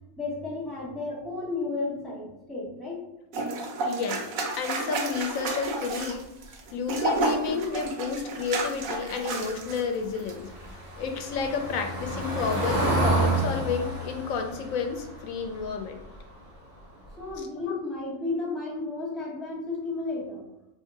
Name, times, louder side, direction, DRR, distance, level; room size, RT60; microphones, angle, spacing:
voice 1, 0.2-3.1 17.2-20.4, left 3 dB, ahead, -6 dB, 0.8 m, -33 dB
sound 1, 3.3-9.8 10.1-10.3, right 2 dB, 90° right, 1.1 m, -31 dB
voice 2, 3.8-4.2 4.6-6.2 6.7-10.5 11.0-16.0 17.6-17.8, left 5 dB, 85° left, 5 dB, 1.0 m, -31 dB
Car passing by / Engine, 9.5-16.5 16.8-17.1 17.3-17.4, right 2 dB, 35° right, 0.8 m, -30 dB
2.8 x 2.6 x 3.8 m, 0.93 s
omnidirectional pair, 1.4 m